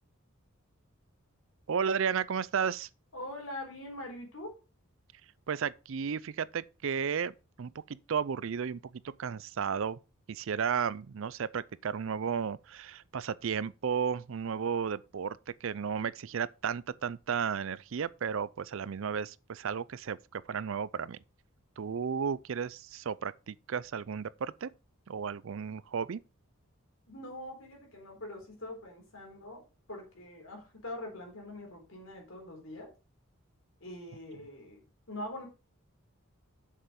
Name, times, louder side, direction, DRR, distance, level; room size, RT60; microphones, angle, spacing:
voice 1, 1.7-2.9 5.5-7.7 8.1-8.8 9.2-10.0 10.3-21.2 21.8-24.7 25.1-26.2, right 6 dB, 60° right, 0.4 m, -33 dB
voice 2, 3.1-4.5 27.1-29.6 29.9-32.9 33.8-35.5, left 1 dB, 65° left, 4.1 m, -43 dB
7.4 x 6.7 x 5.2 m
head